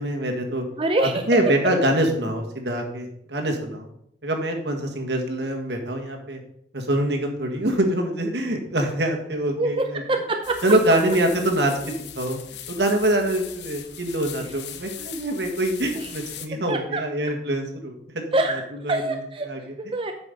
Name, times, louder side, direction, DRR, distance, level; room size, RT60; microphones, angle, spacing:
voice 1, 0.0-0.6 1.0-3.9 4.2-6.4 6.7-10.0 10.6-12.4 12.7-18.2 18.8-19.2 19.5-19.6, right 1 dB, 75° right, 2 dB, 1.7 m, -24 dB
voice 2, 0.8-1.3 9.6-10.6 15.9-16.1 16.7-17.3 18.3-18.6 18.9-19.5 19.8-20.1, right 2 dB, 30° right, 4 dB, 0.6 m, -25 dB
sound 1, 10.4-16.5, left 10 dB, 75° left, 0.9 m, -39 dB
8.5 x 6.1 x 5.3 m, 0.73 s
head